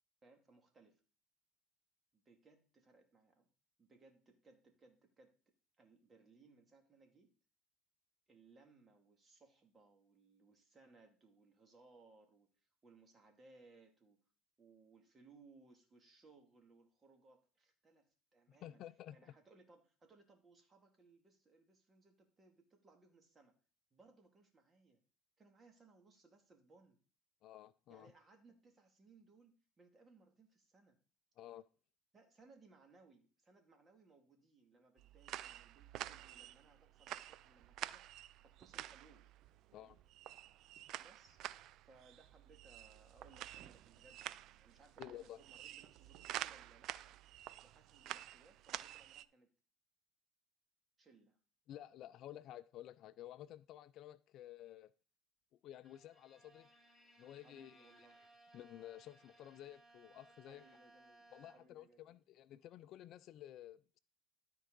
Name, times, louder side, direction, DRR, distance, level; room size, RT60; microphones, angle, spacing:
voice 1, 0.2-1.0 2.1-3.5 3.8-5.3 5.8-7.3 8.3-12.5 12.8-14.2 14.6-18.8 19.1-23.5 23.9-25.0 25.4-27.0 27.9-31.0 32.1-38.0 38.4-39.3 39.8-40.0 41.0-41.4 41.8-47.1 47.6-49.5 51.0-51.4 57.4-58.2 60.5-61.2 61.5-62.2, right 3 dB, 25° right, 2.2 m, -66 dB
voice 2, 18.5-19.2 27.4-28.1 31.4-31.6 39.7-40.0 45.0-45.4 51.7-54.9 55.6-56.7 57.2-57.9 58.5-60.6 61.3-64.0, left 12 dB, 55° left, 0.4 m, -53 dB
sound 1, 35.0-49.3, right 13 dB, 55° right, 0.3 m, -49 dB
Bowed string instrument, 55.8-61.9, right 2 dB, 5° left, 2.4 m, -65 dB
13.0 x 4.5 x 3.9 m
supercardioid pair, 110°, 0 cm